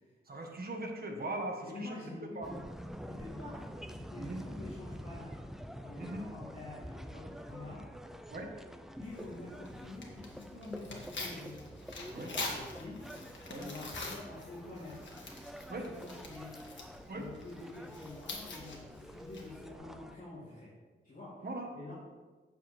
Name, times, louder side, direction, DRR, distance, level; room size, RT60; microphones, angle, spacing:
voice 1, 0.3-2.0 2.3-2.5 4.2-4.4 6.0-6.2 8.3-8.5 12.1-12.3 13.5-13.7 15.7-15.9 17.1-17.3 21.4-21.7, right 2 dB, 50° right, 1 dB, 1.7 m, -39 dB
voice 2, 1.6-2.6 3.1-5.5 5.8-7.9 9.0-11.6 12.0-13.0 13.5-15.1 15.8-16.6 17.1-20.7 21.0-21.5 21.7-21.9, left 2 dB, 40° left, -10 dB, 3.1 m, -47 dB
sound 1, 2.4-20.2, equal, ahead, 0.5 m, -47 dB
Tearing, 9.0-19.7, left 3 dB, 65° left, 1.8 m, -46 dB
9.0 x 7.3 x 4.5 m, 1.3 s
wide cardioid pair, 115°, 20 cm